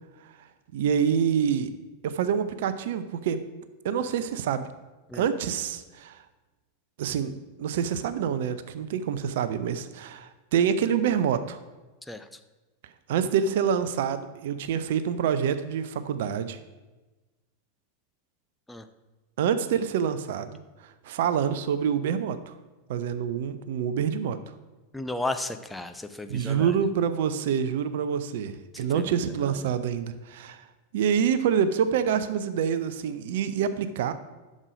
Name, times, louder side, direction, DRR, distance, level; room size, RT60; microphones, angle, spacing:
voice 1, 0.7-1.7 2.0-3.4 3.8-4.7 5.1-6.2 7.0-7.3 7.6-11.6 13.1-16.6 19.4-20.5 20.8-22.5 22.9-24.4 26.3-30.6 30.9-34.1, right 8 dB, 55° right, 12 dB, 0.6 m, -26 dB
voice 2, 12.1-12.4 18.7-18.9 24.9-26.8 28.7-29.7, left 2 dB, 5° left, 8 dB, 0.6 m, -35 dB
11.0 x 6.4 x 5.1 m, 1.2 s
figure-of-eight pair, 90°, 0 cm